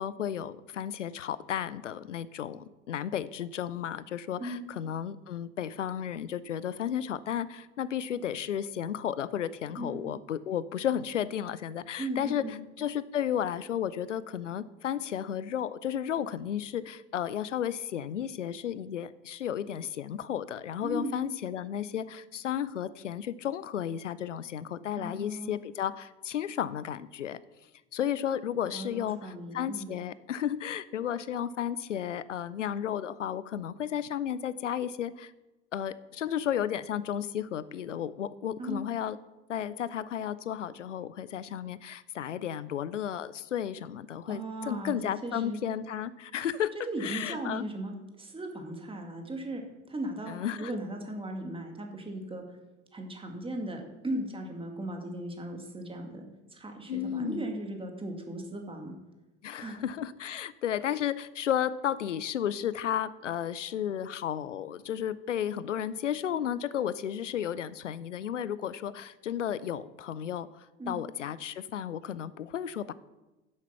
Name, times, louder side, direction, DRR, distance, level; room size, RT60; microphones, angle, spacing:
voice 1, 0.0-27.4 27.9-35.3 35.7-39.2 39.5-46.7 47.0-47.7 50.3-50.7 56.9-57.5 59.4-72.9, left 9 dB, 80° left, 18 dB, 0.5 m, -33 dB
voice 2, 12.0-12.6 20.8-21.2 25.0-25.6 28.7-29.9 38.6-38.8 44.3-45.6 46.9-49.6 49.9-52.4 52.9-56.2 56.5-58.9 59.6-59.8 70.8-71.0, right 1 dB, 15° right, 3 dB, 2.2 m, -37 dB
10.5 x 7.8 x 5.7 m, 1.1 s
figure-of-eight pair, 65°, 36 cm